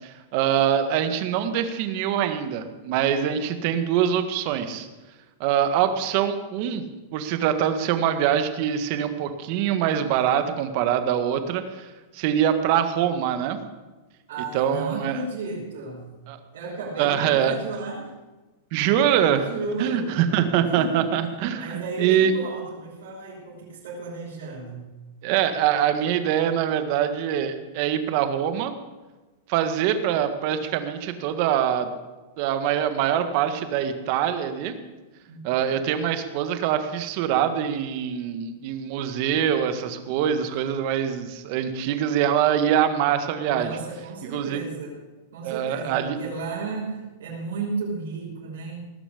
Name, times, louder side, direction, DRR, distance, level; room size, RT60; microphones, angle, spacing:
voice 1, 0.0-4.9 5.4-6.8 7.1-13.6 14.5-15.2 16.3-16.4 17.0-17.5 18.7-19.5 19.8-22.3 25.2-28.8 29.5-31.9 32.4-34.8 35.4-43.8 44.3-44.6 45.4-46.2, right 9 dB, 50° right, 9 dB, 1.6 m, -24 dB
voice 2, 14.3-16.1 16.5-18.1 19.5-20.2 20.7-21.1 21.5-24.9 35.2-35.4 43.4-45.0 45.3-48.8, right 3 dB, 80° right, -8 dB, 5.6 m, -34 dB
19.0 x 7.1 x 8.5 m, 1.2 s
supercardioid pair, 145°, 0 cm